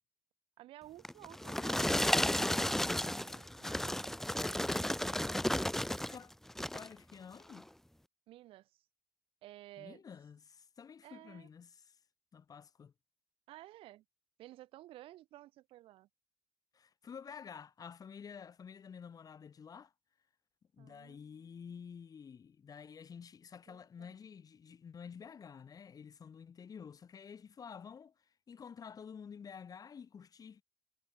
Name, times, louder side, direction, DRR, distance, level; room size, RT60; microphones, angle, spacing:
voice 1, 0.6-4.3 8.3-8.9 9.4-10.0 11.0-11.5 13.5-14.0 14.4-16.1 20.8-21.8 23.7-24.2, right 15 dB, 80° right, 6.8 m, -55 dB
sound 1, 1.0-6.2 6.5-6.9 7.5-7.6, left 1 dB, 5° left, 1.0 m, -33 dB
voice 2, 6.1-7.7 9.8-12.0 12.3-12.9 16.7-19.9 20.7-30.6, left 7 dB, 40° left, 3.7 m, -50 dB
cardioid pair, 95°, 9 cm